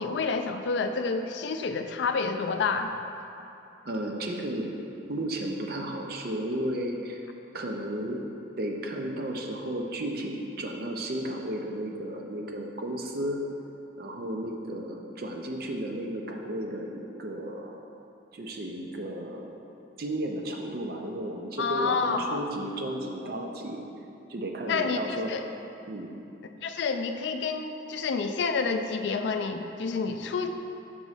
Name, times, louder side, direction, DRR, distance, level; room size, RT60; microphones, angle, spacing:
voice 1, 0.0-2.9 21.6-22.4 24.7-25.4 26.6-30.5, left 4 dB, 70° left, 7 dB, 0.4 m, -29 dB
voice 2, 3.8-4.7 5.1-7.2 7.5-8.3 8.6-13.4 14.0-17.8 18.3-19.6 20.0-23.8 24.3-25.3 25.9-26.2, right 1 dB, 55° right, 1 dB, 0.6 m, -33 dB
6.2 x 3.0 x 5.5 m, 2.8 s
head